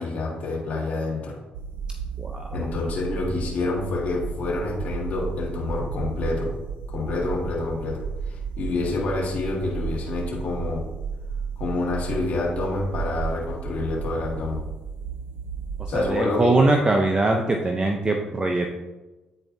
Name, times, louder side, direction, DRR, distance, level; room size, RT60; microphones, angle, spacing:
voice 1, 0.0-1.4 2.5-6.6 6.9-10.9 11.6-14.6 15.9-16.6, left 3 dB, 55° left, -3 dB, 1.6 m, -28 dB
sound 1, 1.5-16.1, right 5 dB, 90° right, 0.4 m, -33 dB
voice 2, 2.2-2.5 15.8-18.7, right 2 dB, 30° right, 2 dB, 0.7 m, -22 dB
9.1 x 4.4 x 2.7 m, 1.1 s
supercardioid pair, 65°, 3 cm